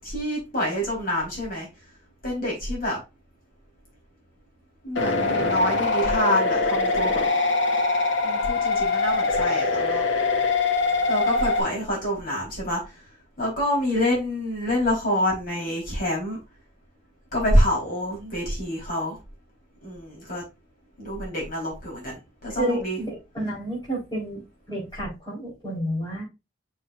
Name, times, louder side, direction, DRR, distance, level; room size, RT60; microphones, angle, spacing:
voice 1, 0.0-1.7 2.2-3.0 4.8-7.2 8.2-10.0 11.1-12.8 13.4-16.4 17.3-19.2 19.8-20.4 21.0-23.0, equal, 50° left, -3 dB, 4.2 m, -26 dB
sound 1, 5.0-11.6, left 3 dB, 90° left, 1.9 m, -23 dB
voice 2, 22.6-23.1 23.3-24.4 24.7-26.2, right 1 dB, 20° left, -5 dB, 4.4 m, -30 dB
6.7 x 5.7 x 2.6 m, 0.25 s
head